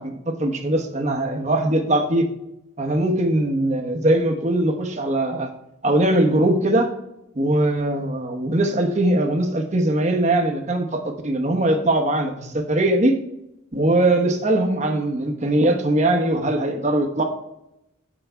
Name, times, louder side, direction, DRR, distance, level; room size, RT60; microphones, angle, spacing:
voice 1, 0.0-2.3 2.8-5.5 5.8-6.9 7.3-13.1 13.7-17.2, right 1 dB, 35° right, 3 dB, 1.0 m, -21 dB
8.1 x 4.9 x 4.5 m, 0.84 s
head